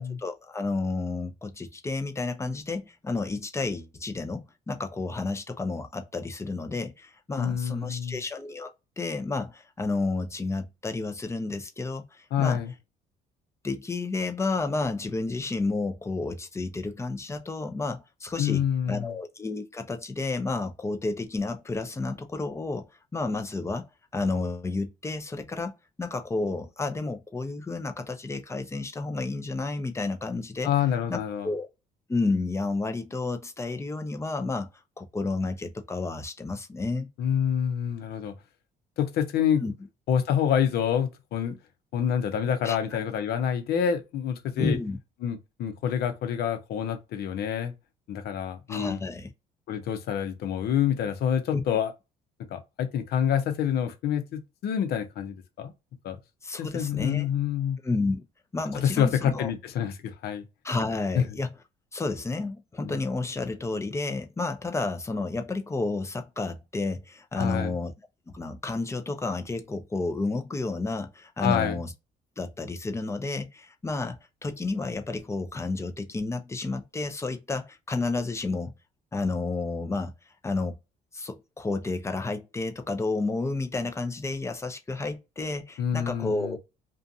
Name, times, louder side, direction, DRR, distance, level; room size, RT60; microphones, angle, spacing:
voice 1, 0.0-8.7 9.0-12.6 13.6-22.9 23.1-30.7 31.1-31.2 31.4-31.7 32.1-34.7 35.0-37.1 39.6-39.7 42.6-42.8 44.6-45.0 48.7-49.3 51.5-51.6 56.4-57.3 57.8-58.2 58.5-59.5 60.6-61.5 61.9-67.9 68.3-71.9 72.4-78.7 79.1-80.1 80.4-80.8 81.1-86.6, left 3 dB, 15° left, 0.5 m, -31 dB
voice 2, 7.4-8.2 12.3-12.7 18.4-19.1 30.6-31.5 37.2-38.3 39.0-39.6 40.1-41.6 41.9-44.8 45.2-47.7 48.1-49.0 49.7-51.9 52.5-55.7 56.0-56.2 56.6-57.8 58.7-60.4 61.2-61.3 62.8-63.0 67.4-67.7 71.4-71.8 85.8-86.6, left 8 dB, 70° left, 0.8 m, -27 dB
2.5 x 2.3 x 2.5 m
cardioid pair, 110°, 17 cm